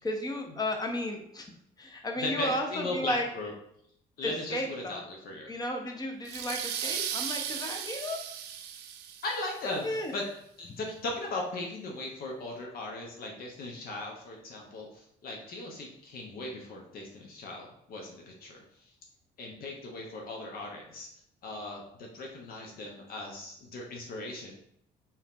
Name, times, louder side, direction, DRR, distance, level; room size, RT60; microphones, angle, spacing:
voice 1, 0.0-1.5 1.8-3.3 4.2-5.0 5.5-8.2 9.8-10.2, left 1 dB, 25° left, 3 dB, 0.7 m, -33 dB
voice 2, 2.2-3.5 4.2-5.5 9.2-10.3 10.6-18.9 19.4-21.1 21.4-24.5, left 2 dB, 60° left, 0 dB, 0.9 m, -38 dB
sound 1, 6.3-9.7, right 9 dB, 85° right, 0.4 m, -36 dB
3.5 x 2.9 x 3.6 m, 0.71 s
cardioid pair, 110°, 17 cm